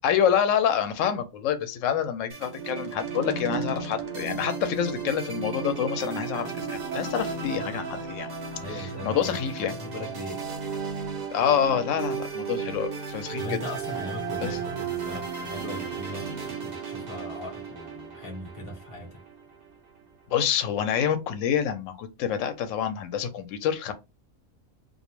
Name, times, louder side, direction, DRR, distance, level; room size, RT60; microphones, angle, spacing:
voice 1, 0.0-8.3 8.7-9.7 11.3-13.6 14.4-14.5 20.3-23.9, left 8 dB, 75° left, 0.9 m, -27 dB
sound 1, 2.3-19.7, right 5 dB, 50° right, 0.5 m, -34 dB
voice 2, 8.6-9.4 9.7-10.4 13.4-19.2, left 2 dB, 30° left, 0.7 m, -39 dB
2.4 x 2.0 x 3.0 m
omnidirectional pair, 1.4 m